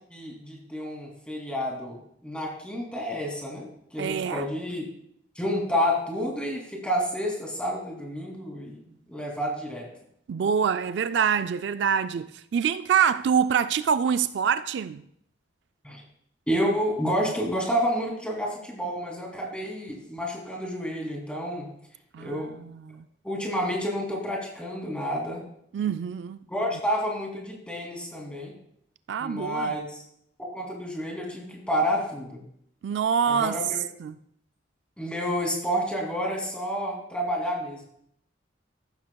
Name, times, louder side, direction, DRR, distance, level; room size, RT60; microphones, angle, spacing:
voice 1, 0.1-2.0 2.2-4.9 5.4-9.8 15.8-16.0 16.5-21.7 22.2-22.5 23.2-25.4 26.5-28.5 29.2-30.0 30.4-32.4 33.3-33.8 35.0-37.8, equal, 5° left, 2.6 m, -29 dB
voice 2, 4.0-4.5 10.3-15.0 22.1-23.0 25.7-26.4 29.1-29.8 32.8-33.5 34.0-34.1, right 7 dB, 65° right, 0.3 m, -25 dB
14.0 x 12.5 x 2.3 m
head